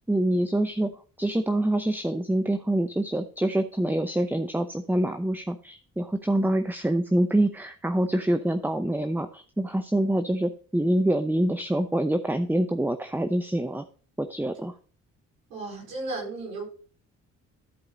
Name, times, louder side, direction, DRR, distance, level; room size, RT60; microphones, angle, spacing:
voice 1, 0.1-0.9 1.2-13.8 14.2-14.7, right 1 dB, 5° right, 9 dB, 0.7 m, -25 dB
voice 2, 15.5-16.7, right 2 dB, 85° right, -3 dB, 4.9 m, -34 dB
14.0 x 4.9 x 4.0 m, 0.41 s
hypercardioid pair, 45°, 38 cm